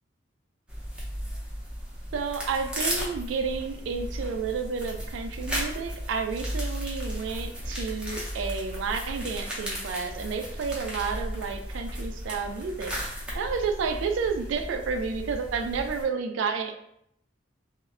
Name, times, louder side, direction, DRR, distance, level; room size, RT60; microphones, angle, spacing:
sound 1, 0.7-16.0, equal, 5° right, 0.5 m, -35 dB
voice 1, 2.1-12.9 13.3-16.7, right 5 dB, 70° right, 6 dB, 0.3 m, -31 dB
2.1 x 2.0 x 3.5 m, 0.74 s
head